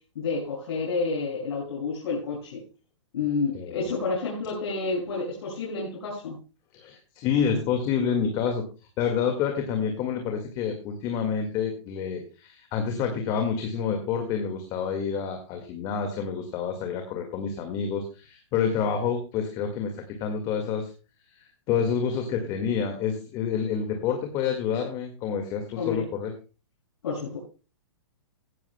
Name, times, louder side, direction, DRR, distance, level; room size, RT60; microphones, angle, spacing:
voice 1, 0.1-2.6 3.1-6.4 25.7-26.0 27.0-27.4, left 4 dB, 65° left, -6 dB, 6.5 m, -29 dB
voice 2, 3.5-3.8 6.7-8.7 9.0-20.9 21.3-26.3, left 7 dB, 25° left, 4 dB, 1.8 m, -28 dB
16.5 x 13.5 x 2.2 m, 0.33 s
hypercardioid pair, 155°, 15 cm